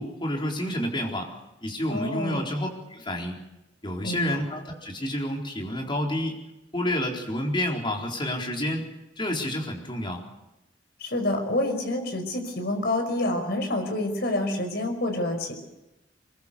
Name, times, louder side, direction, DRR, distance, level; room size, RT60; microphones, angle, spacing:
voice 1, 0.0-1.3 1.6-3.4 3.8-6.4 6.7-8.8 9.2-10.2, left 1 dB, 25° left, 1 dB, 4.1 m, -29 dB
voice 2, 1.9-2.5 4.0-4.4 11.0-15.5, left 1 dB, 60° left, 5 dB, 5.4 m, -28 dB
24.0 x 22.0 x 6.9 m, 0.94 s
head